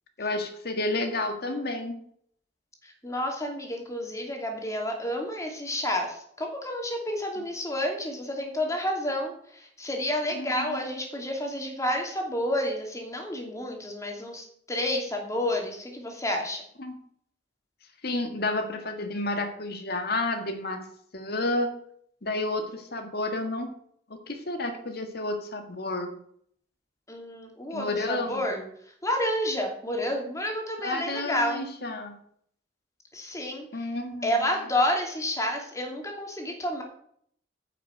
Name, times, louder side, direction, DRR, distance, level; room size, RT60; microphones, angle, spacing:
voice 1, 0.2-1.9 10.3-10.8 16.8-16.9 18.0-20.8 21.1-21.7 22.2-23.7 24.1-26.2 27.7-28.6 30.8-32.2 33.7-34.4, left 2 dB, 60° left, 6 dB, 1.8 m, -31 dB
voice 2, 2.8-16.6 27.1-28.6 29.0-31.6 33.1-33.9 34.2-36.8, left 1 dB, 20° left, 2 dB, 2.8 m, -30 dB
10.0 x 6.6 x 7.8 m, 0.64 s
head